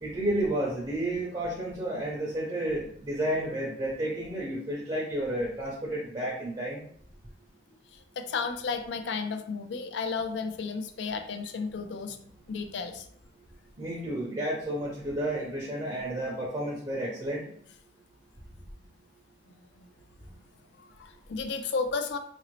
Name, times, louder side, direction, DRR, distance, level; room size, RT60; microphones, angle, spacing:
voice 1, 0.0-6.8 13.8-17.5, right 1 dB, 25° right, -3 dB, 0.6 m, -31 dB
voice 2, 7.9-12.2 12.5-13.1 19.8-19.9 20.3-20.4 20.7-22.2, left 4 dB, 65° left, 7 dB, 0.4 m, -33 dB
3.9 x 2.6 x 3.1 m, 0.62 s
head